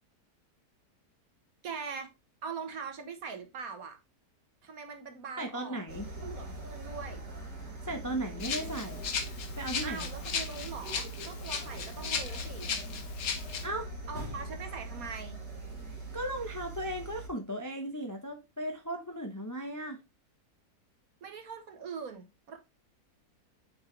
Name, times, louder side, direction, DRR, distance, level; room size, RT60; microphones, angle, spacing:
voice 1, 1.6-2.1 2.4-4.0 4.6-5.8 6.2-7.2 9.8-12.7 14.1-15.4 21.2-22.6, right 5 dB, 60° right, 1.5 m, -42 dB
voice 2, 5.4-6.1 7.8-9.1 9.6-10.1 13.6-13.9 16.1-20.0, right 1 dB, 20° left, 0.5 m, -36 dB
sound 1, 5.9-17.3, right 2 dB, 40° right, 2.6 m, -42 dB
Rattle (instrument), 8.4-13.6, left 6 dB, 60° left, 1.4 m, -36 dB
7.4 x 4.6 x 3.2 m
omnidirectional pair, 1.8 m